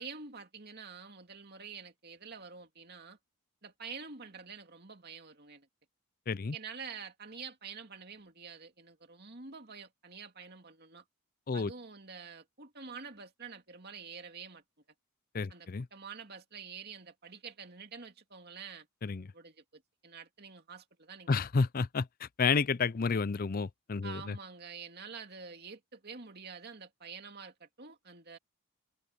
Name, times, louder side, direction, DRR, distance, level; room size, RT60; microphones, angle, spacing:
voice 1, 0.0-3.2 3.6-5.7 6.5-11.0 11.5-14.6 15.5-18.9 19.3-21.4 24.0-28.4, right 5 dB, 45° right, 2.6 m, -47 dB
voice 2, 15.3-15.9 19.0-19.3 21.3-24.4, left 4 dB, 40° left, 0.5 m, -31 dB
head